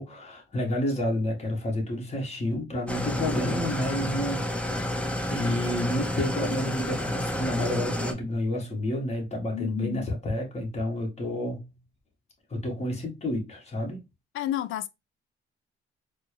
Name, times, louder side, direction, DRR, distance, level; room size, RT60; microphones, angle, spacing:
voice 1, 0.0-11.7 12.5-14.0, left 1 dB, 35° left, 1.7 m, -30 dB
Engine starting / Idling, 2.9-8.1, left 1 dB, 5° left, 0.7 m, -30 dB
voice 2, 9.5-10.1 14.3-14.9, left 13 dB, 80° left, 0.4 m, -31 dB
4.2 x 2.3 x 3.2 m
cardioid pair, 90°, 20 cm